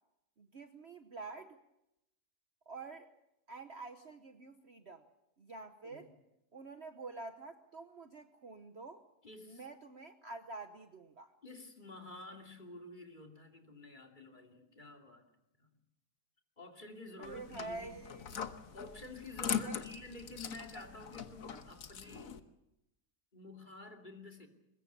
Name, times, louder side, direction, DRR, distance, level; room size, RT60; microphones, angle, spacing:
voice 1, 0.4-1.6 2.7-3.1 3.5-5.0 5.4-6.1 6.5-9.0 9.5-11.3 17.2-18.5 19.6-19.7, right 3 dB, 45° right, 8 dB, 1.1 m, -47 dB
voice 2, 9.2-9.7 11.4-15.3 15.6-15.8 16.6-18.0 18.7-22.3 23.3-24.5, left 2 dB, 30° left, 3 dB, 2.7 m, -50 dB
sound 1, 17.2-22.4, left 7 dB, 60° left, 1.5 m, -41 dB
23.0 x 21.0 x 6.8 m, 0.87 s
omnidirectional pair, 1.7 m